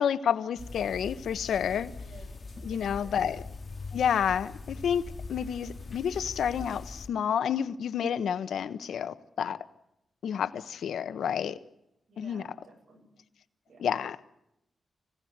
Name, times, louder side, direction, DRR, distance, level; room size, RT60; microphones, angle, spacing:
voice 1, 0.0-1.9 2.6-3.4 3.9-9.6 10.2-11.6 12.2-12.4 13.8-14.2, left 8 dB, 85° left, 1.2 m, -29 dB
sound 1, 0.6-7.1, left 3 dB, 30° left, 2.2 m, -42 dB
voice 2, 2.0-2.4 2.7-3.4 12.1-13.1 13.7-13.9, right 3 dB, 70° right, 6.8 m, -54 dB
25.0 x 17.0 x 9.5 m
wide cardioid pair, 130°, 0 cm